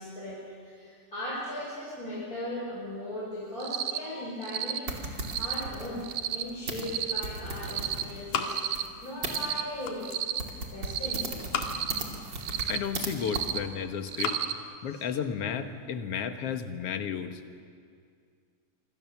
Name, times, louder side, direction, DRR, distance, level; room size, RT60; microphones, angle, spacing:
voice 1, 0.0-5.1 5.4-6.0 6.3-10.1 10.7-11.3 14.9-15.0, left 1 dB, 25° left, -7 dB, 6.3 m, -38 dB
Cricket, 3.6-4.0 4.4-4.8 5.2-5.6 6.0-6.4 6.8-7.2 7.6-8.0 8.4-8.8 9.2-9.6 10.0-10.4 10.8-11.2 11.6-12.0 12.4-12.8 13.2-13.6 14.1-14.5, right 10 dB, 85° right, 2.5 m, -32 dB
sound 1, 4.9-9.4 10.0-10.1 10.4-13.1 13.3-13.5, right 3 dB, 35° right, 3.1 m, -37 dB
sound 2, 6.5-7.4 7.7-9.1 9.5-10.3 11.1-12.0 12.6-13.4 13.9-14.5, left 6 dB, 85° left, 3.4 m, -37 dB
voice 2, 12.7-14.4 14.8-17.4, left 7 dB, 60° left, 8 dB, 2.1 m, -33 dB
26.0 x 26.0 x 7.2 m, 2.3 s
omnidirectional pair, 3.4 m